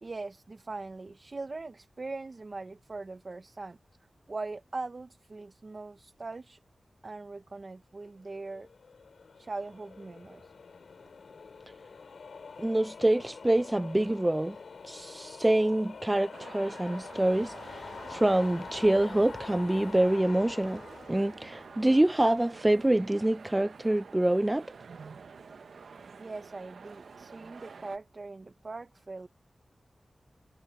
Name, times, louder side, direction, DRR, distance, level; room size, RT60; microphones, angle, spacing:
voice 1, 0.0-3.8 4.3-6.6 7.0-8.7 9.4-10.5 26.2-29.3, right 3 dB, 45° right, 0.7 m, -41 dB
sound 1, 8.3-22.6, left 5 dB, 90° left, 2.4 m, -46 dB
voice 2, 12.6-14.6 14.8-20.8 21.1-24.6, right 1 dB, 15° right, 0.4 m, -26 dB
sound 2, 16.3-28.0, right 5 dB, 90° right, 0.8 m, -48 dB
wide cardioid pair, 80°, 0 cm